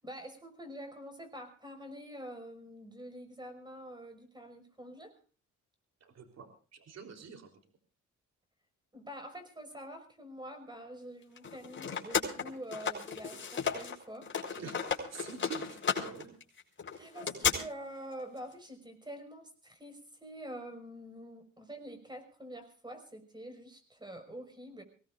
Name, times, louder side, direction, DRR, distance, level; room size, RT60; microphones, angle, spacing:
voice 1, 0.0-5.1 8.9-14.3 16.9-24.8, equal, 15° right, 7 dB, 5.3 m, -46 dB
voice 2, 6.0-7.5 14.5-16.3, right 5 dB, 60° right, 6 dB, 3.5 m, -46 dB
sound 1, 11.4-14.0 14.2-17.5, left 6 dB, 40° left, 4.5 m, -34 dB
24.5 x 18.0 x 2.5 m, 0.38 s
cardioid pair, 90°, 30 cm